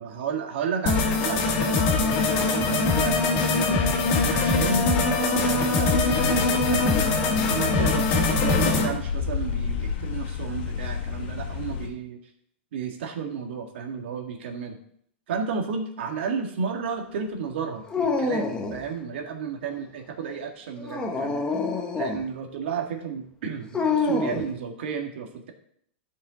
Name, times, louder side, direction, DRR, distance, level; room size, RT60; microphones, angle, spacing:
voice 1, 0.0-3.8 4.3-4.9 5.3-12.2 12.7-14.8 15.3-21.4 22.0-25.5, right 6 dB, 70° right, 3 dB, 1.8 m, -33 dB
sound 1, 0.8-8.9, left 3 dB, 40° left, 1.9 m, -22 dB
sound 2, 5.9-11.9, left 6 dB, 60° left, 1.7 m, -31 dB
Dog, 17.9-18.9 20.8-22.3 23.7-24.5, left 4 dB, 15° left, 1.1 m, -26 dB
12.0 x 5.7 x 4.0 m, 0.66 s
supercardioid pair, 140°, 6 cm